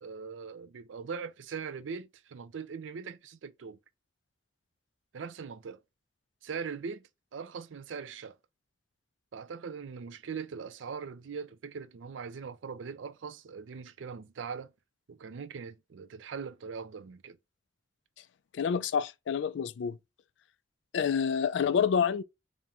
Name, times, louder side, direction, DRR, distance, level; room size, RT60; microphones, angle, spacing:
voice 1, 0.0-3.8 5.1-5.8 6.4-8.4 9.3-14.7 15.1-17.4, right 5 dB, 80° right, 0.4 m, -41 dB
voice 2, 18.5-20.0 20.9-22.2, left 7 dB, 70° left, 0.3 m, -28 dB
4.3 x 2.1 x 3.6 m
head